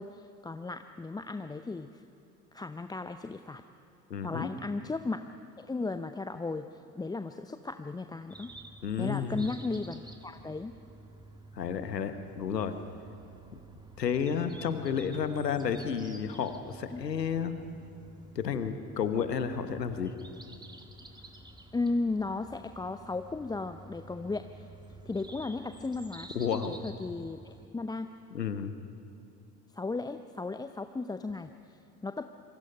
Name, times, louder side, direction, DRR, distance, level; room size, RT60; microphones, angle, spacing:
voice 1, 0.0-2.0 2.5-3.6 4.2-5.2 5.6-8.5 9.0-10.7 16.9-17.0 21.1-21.2 21.7-24.7 25.1-28.1 29.7-32.2, left 3 dB, 10° left, 9 dB, 0.6 m, -35 dB
voice 2, 4.1-4.5 8.8-9.5 11.5-12.7 13.5-13.6 14.0-17.5 18.3-20.1 26.3-26.7 28.3-28.7, left 7 dB, 85° left, 10 dB, 1.3 m, -31 dB
sound 1, 8.3-27.7, right 2 dB, 10° right, 2.0 m, -50 dB
26.5 x 24.0 x 5.4 m, 2.8 s
figure-of-eight pair, 65°, 48 cm